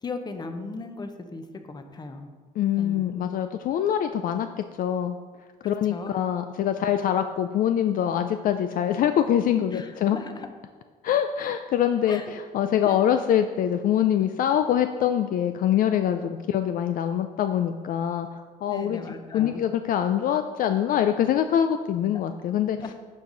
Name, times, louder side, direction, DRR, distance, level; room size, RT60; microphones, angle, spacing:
voice 1, 0.0-2.3 2.8-3.0 5.6-6.2 9.7-10.5 12.1-12.3 12.8-13.0 18.7-19.6 22.1-22.2 22.8-22.9, left 3 dB, 25° left, 7 dB, 0.8 m, -37 dB
voice 2, 2.6-5.2 5.6-10.2 11.0-19.0 19.3-22.8, left 10 dB, 55° left, 8 dB, 0.4 m, -24 dB
10.5 x 4.7 x 3.9 m, 1.5 s
cardioid pair, 110°, 17 cm